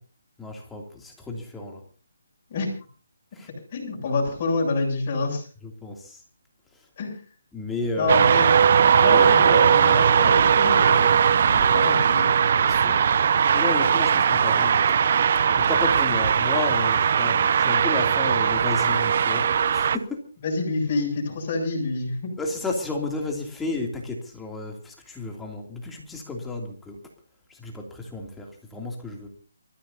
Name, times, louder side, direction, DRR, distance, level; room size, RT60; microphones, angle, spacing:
voice 1, 0.4-1.8 3.3-3.5 5.6-6.2 6.7-6.9 7.5-9.8 12.6-13.0 13.3-15.0 15.6-20.2 22.4-27.0 27.5-29.3, left 2 dB, 5° left, 1 dB, 2.8 m, -32 dB
voice 2, 3.7-5.4 7.0-7.2 8.0-8.5 9.0-12.3 20.4-22.3, left 3 dB, 35° left, -2 dB, 7.8 m, -27 dB
sound 1, 8.1-20.0, right 7 dB, 50° right, 0.6 m, -19 dB
28.0 x 14.5 x 2.8 m, 0.38 s
hypercardioid pair, 155°, 0 cm